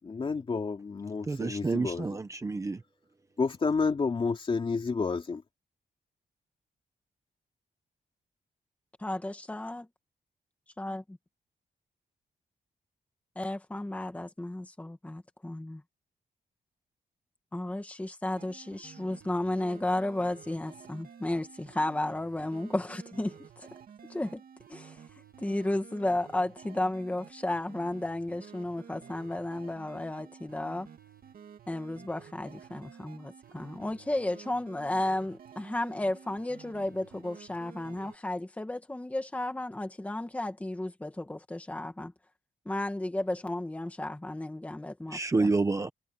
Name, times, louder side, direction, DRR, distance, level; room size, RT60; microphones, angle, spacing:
voice 1, 0.0-2.2 3.4-5.4, left 4 dB, 35° left, 2.9 m, -30 dB
voice 2, 1.3-2.8 45.1-45.9, right 3 dB, 20° right, 0.9 m, -28 dB
voice 3, 9.0-9.9 10.8-11.2 13.3-15.8 17.5-23.7 24.1-24.4 24.7-25.0 25.4-30.9 31.7-42.1 42.6-45.5, left 1 dB, 10° left, 1.7 m, -33 dB
sound 1, 18.4-38.2, right 7 dB, 65° right, 2.4 m, -52 dB
wide cardioid pair, 175°, 16 cm